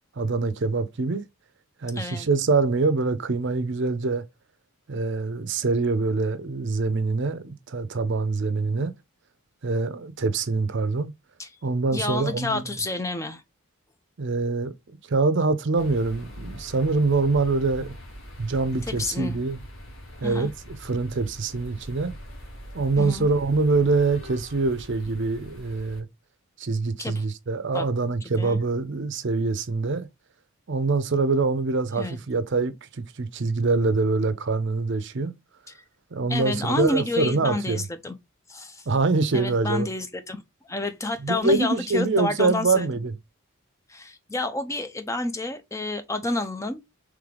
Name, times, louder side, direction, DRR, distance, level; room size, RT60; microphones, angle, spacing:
voice 1, 0.2-1.3 1.8-4.3 4.9-8.9 9.6-11.1 11.6-12.6 14.2-14.8 15.1-17.9 18.4-19.6 20.2-22.1 22.7-26.1 26.6-30.1 30.7-35.3 36.1-37.8 38.9-39.9 41.2-43.1, right 3 dB, 50° right, 0.5 m, -24 dB
voice 2, 1.9-2.3 11.4-11.5 11.9-13.4 19.0-19.4 20.2-20.5 23.0-23.3 27.0-27.2 27.7-27.9 28.4-28.6 32.0-32.2 36.3-38.1 38.5-38.9 39.3-40.4 40.7-42.9 43.9-46.8, left 2 dB, 15° left, 0.4 m, -29 dB
sound 1, 15.8-26.0, equal, 60° left, 1.5 m, -43 dB
3.7 x 3.3 x 3.3 m
head